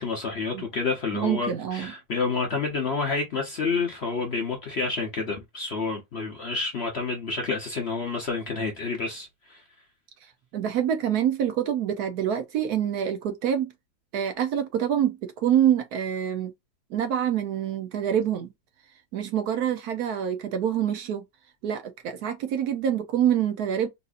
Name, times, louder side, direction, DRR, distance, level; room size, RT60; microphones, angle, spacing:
voice 1, 0.0-9.6, left 4 dB, 50° left, 0.8 m, -29 dB
voice 2, 1.1-1.9 10.5-13.7 14.1-16.5 16.9-18.5 19.1-21.2 21.6-23.9, right 9 dB, 70° right, 1.0 m, -26 dB
4.1 x 2.6 x 2.4 m
omnidirectional pair, 1.9 m